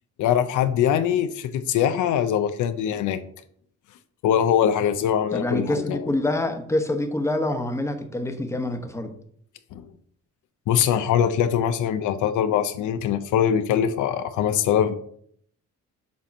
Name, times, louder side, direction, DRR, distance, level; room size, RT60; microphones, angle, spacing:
voice 1, 0.2-3.2 4.2-6.0 9.7-9.9 10.7-14.9, left 9 dB, 80° left, 10 dB, 0.6 m, -22 dB
voice 2, 5.3-9.1, left 1 dB, 10° left, 6 dB, 1.0 m, -26 dB
7.4 x 2.9 x 5.3 m, 0.64 s
cardioid pair, 90°, 30 cm